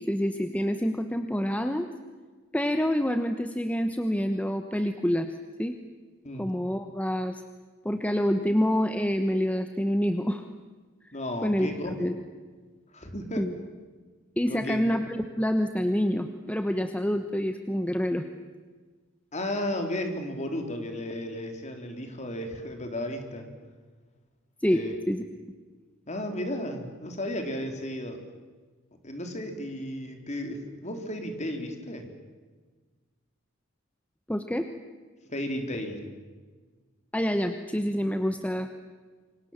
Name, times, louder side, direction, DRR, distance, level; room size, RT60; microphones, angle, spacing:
voice 1, 0.1-1.9 2.5-5.3 5.6-5.8 6.4-7.4 7.8-10.4 11.4-12.2 13.4-13.5 14.4-18.2 24.6-24.8 25.1-25.2 34.3-34.7 37.1-38.7, equal, 5° left, 7 dB, 1.0 m, -27 dB
voice 2, 11.1-12.1 12.9-13.4 14.5-14.8 19.3-23.5 24.7-25.0 26.1-28.2 29.0-32.1 35.3-36.0, left 1 dB, 35° left, 5 dB, 3.7 m, -34 dB
29.0 x 24.5 x 7.3 m, 1.4 s
head